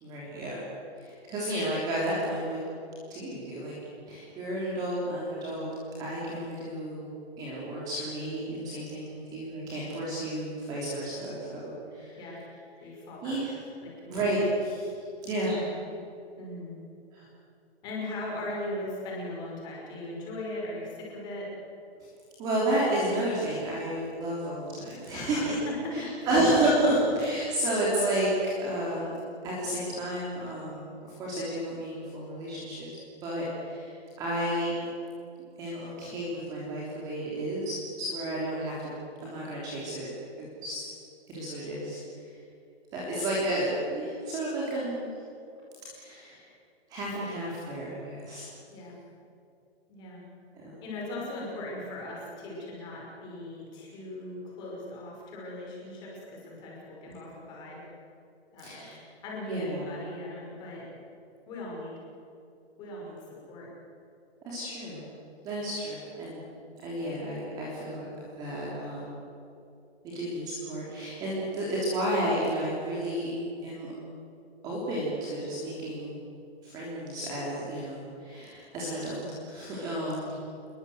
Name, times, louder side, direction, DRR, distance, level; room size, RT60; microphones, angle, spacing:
voice 1, 0.0-0.6 1.0-2.6 3.1-3.7 4.1-5.7 6.0-12.2 13.2-13.5 14.1-14.9 15.2-15.6 17.1-17.2 22.4-25.5 25.9-29.1 29.4-32.9 33.2-34.7 35.6-38.9 39.2-40.1 40.4-40.9 41.3-42.4 42.9-45.1 45.9-46.5 46.9-48.4 50.5-50.8 57.1-57.4 58.6-59.0 59.5-59.9 64.4-65.1 65.4-66.4 66.8-68.1 68.3-69.2 70.0-73.3 73.6-73.9 74.6-76.2 76.6-80.4, right 1 dB, 10° right, -6 dB, 3.3 m, -31 dB
voice 2, 12.8-13.4 13.8-14.2 15.5-15.8 16.4-16.8 17.8-21.5 25.1-26.3 48.7-49.0 49.9-50.2 50.8-57.8 58.5-58.9 59.2-60.9 61.5-61.9 62.8-63.7, left 1 dB, 15° left, -3 dB, 5.6 m, -39 dB
28.5 x 22.0 x 7.9 m, 2.7 s
hypercardioid pair, 180°, 33 cm